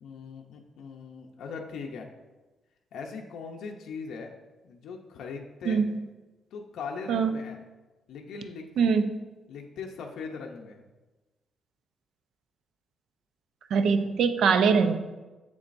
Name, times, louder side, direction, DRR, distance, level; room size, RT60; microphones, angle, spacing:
voice 1, 0.0-2.1 2.9-4.3 4.6-5.8 6.5-7.6 8.1-8.7 9.5-10.9, left 5 dB, 75° left, 2 dB, 0.7 m, -40 dB
voice 2, 5.7-6.0 7.1-7.4 8.8-9.0 13.7-14.9, right 5 dB, 65° right, 8 dB, 0.5 m, -23 dB
7.8 x 7.1 x 2.6 m, 1.2 s
cardioid pair, 160°, 0 cm